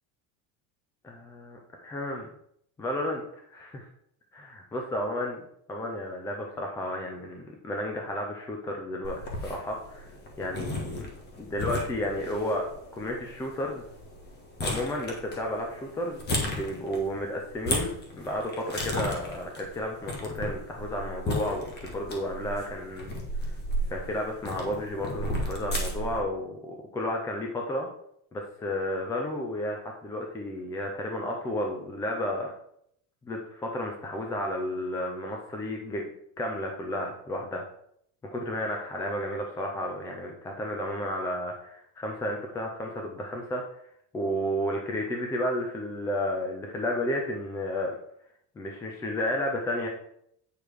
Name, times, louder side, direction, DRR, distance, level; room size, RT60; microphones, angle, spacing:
voice 1, 1.0-2.3 2.8-3.2 3.5-3.9 4.3-5.4 5.7-10.1 10.4-11.1 11.4-12.7 12.9-13.8 14.6-23.2 23.9-27.9 28.3-32.5 33.3-36.0 36.4-37.7 38.2-43.6 44.1-47.9 48.6-49.9, left 1 dB, 10° left, 1 dB, 0.3 m, -32 dB
sound 1, 9.0-26.2, left 1 dB, 25° left, 1.4 m, -35 dB
8.9 x 4.7 x 4.9 m, 0.72 s
cardioid pair, 180°, 42 cm